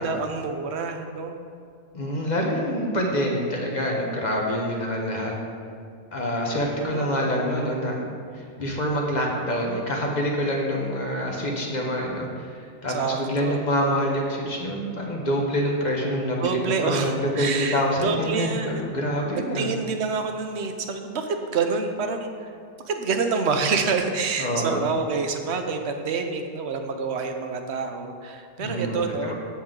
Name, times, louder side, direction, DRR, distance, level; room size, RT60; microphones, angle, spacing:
voice 1, 0.0-1.4 6.7-7.3 12.9-14.1 16.4-18.9 19.4-22.5 22.8-29.3, right 4 dB, 75° right, 6 dB, 1.0 m, -27 dB
voice 2, 1.9-5.3 6.1-19.7 24.4-24.8 28.6-29.3, equal, 45° left, -1 dB, 1.1 m, -26 dB
7.6 x 7.2 x 3.7 m, 2.3 s
omnidirectional pair, 1.1 m